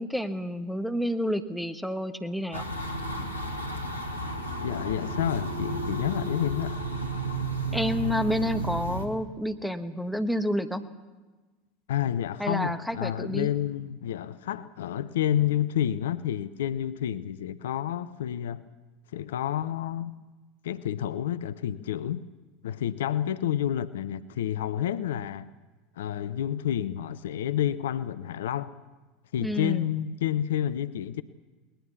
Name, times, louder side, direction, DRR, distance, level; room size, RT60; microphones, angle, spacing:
voice 1, 0.0-2.6 7.7-10.9 12.4-13.5 29.4-29.9, equal, ahead, 1.2 m, -29 dB
sound 1, 2.5-9.1, right 2 dB, 90° left, 1.8 m, -32 dB
voice 2, 4.6-6.8 11.9-18.6 19.1-20.1 20.6-22.2 22.6-25.5 26.0-28.7 29.3-31.2, left 11 dB, 65° left, 0.6 m, -29 dB
20.5 x 19.5 x 7.0 m
figure-of-eight pair, 80°, 0 cm